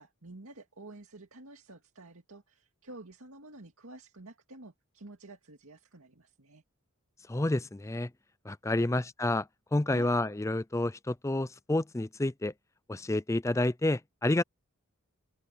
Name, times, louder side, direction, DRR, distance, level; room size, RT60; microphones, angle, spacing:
voice 1, 0.0-6.6 8.7-9.1 9.9-10.1, right 2 dB, 75° right, 2.2 m, -50 dB
voice 2, 7.3-8.1 8.5-9.5 9.7-12.5 12.9-14.4, left 2 dB, 15° left, 0.4 m, -29 dB
open air
head